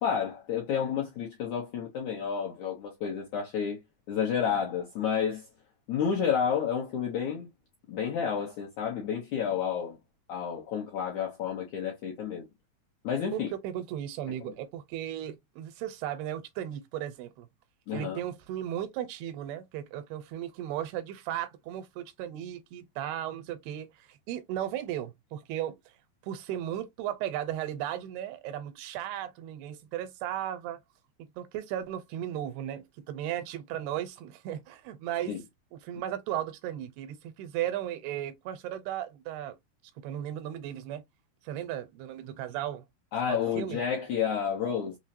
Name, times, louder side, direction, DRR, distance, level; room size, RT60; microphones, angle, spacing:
voice 1, 0.0-3.8 4.1-5.5 5.9-7.5 7.9-10.0 10.3-12.4 13.0-13.5 17.9-18.2 35.3-35.4 43.1-45.0, left 7 dB, 75° left, 1.7 m, -30 dB
voice 2, 13.3-17.5 17.9-25.8 26.2-30.8 31.2-35.4 35.7-39.6 40.0-41.0 41.4-42.8 43.3-43.8, right 11 dB, 85° right, 2.6 m, -36 dB
6.1 x 2.1 x 2.6 m
omnidirectional pair, 4.6 m